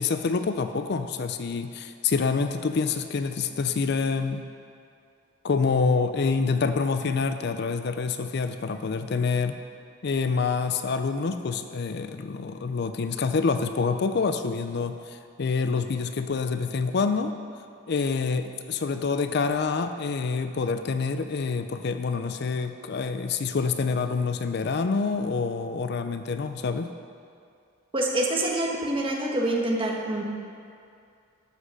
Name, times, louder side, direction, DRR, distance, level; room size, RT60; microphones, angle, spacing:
voice 1, 0.0-4.4 5.4-9.6 10.0-17.3 17.9-26.9, left 4 dB, 50° left, 9 dB, 0.4 m, -27 dB
voice 2, 27.9-30.2, right 1 dB, 25° right, -1 dB, 1.3 m, -26 dB
12.5 x 6.2 x 6.3 m, 2.4 s
head